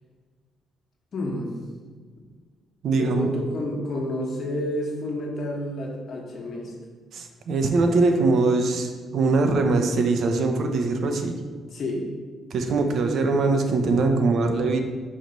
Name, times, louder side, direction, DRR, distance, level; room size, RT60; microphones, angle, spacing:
voice 1, 1.1-1.5 2.9-6.7 11.7-12.1, left 1 dB, 55° left, 0 dB, 1.3 m, -30 dB
voice 2, 2.8-3.3 7.1-11.4 12.5-14.8, right 3 dB, 65° right, 4 dB, 0.7 m, -22 dB
5.8 x 3.1 x 5.2 m, 1.5 s
cardioid pair, 90°, 0 cm